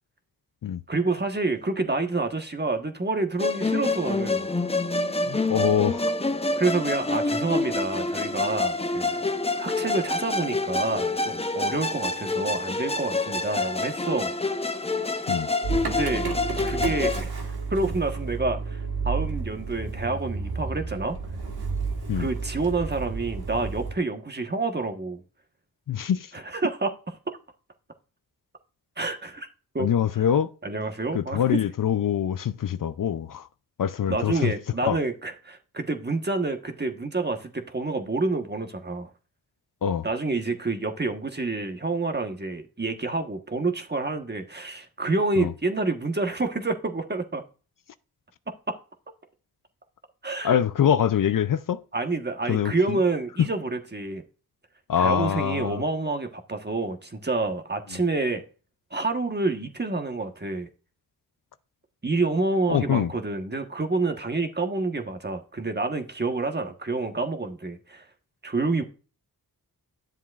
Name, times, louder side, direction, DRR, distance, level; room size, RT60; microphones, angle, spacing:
voice 1, 0.9-4.5 6.6-9.2 9.6-14.3 15.9-16.3 16.6-17.3 17.7-21.2 22.2-25.2 26.3-26.9 29.0-29.5 29.7-29.9 30.1-30.3 30.6-31.6 34.0-39.1 40.0-47.4 48.7-48.8 50.2-50.6 51.9-54.2 55.0-58.4 58.9-60.7 62.0-68.1 68.4-68.8, right 3 dB, 25° right, 1.3 m, -28 dB
Musical instrument, 3.4-17.2, left 2 dB, 15° left, 0.7 m, -27 dB
voice 2, 5.3-6.1 15.3-15.5 22.1-22.3 25.9-26.3 29.8-30.5 31.1-33.5 33.8-34.5 34.8-35.0 39.8-40.1 45.4-45.5 50.4-51.8 52.5-53.0 53.4-53.5 54.9-55.8 62.7-63.1, left 9 dB, 60° left, 0.5 m, -24 dB
Motor vehicle (road) / Engine starting, 15.6-23.9, right 4 dB, 80° right, 1.7 m, -31 dB
11.0 x 7.3 x 2.5 m
cardioid pair, 55°, 37 cm